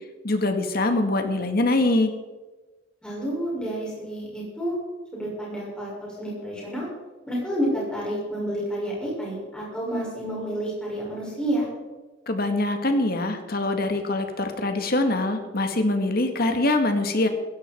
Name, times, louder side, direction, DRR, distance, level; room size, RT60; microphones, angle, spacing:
voice 1, 0.2-2.1 12.3-17.3, left 2 dB, 55° left, 6 dB, 2.0 m, -23 dB
voice 2, 3.0-4.7 5.1-6.9 7.3-11.7, right 1 dB, 5° left, -6 dB, 6.5 m, -29 dB
16.5 x 16.0 x 4.6 m, 1.2 s
head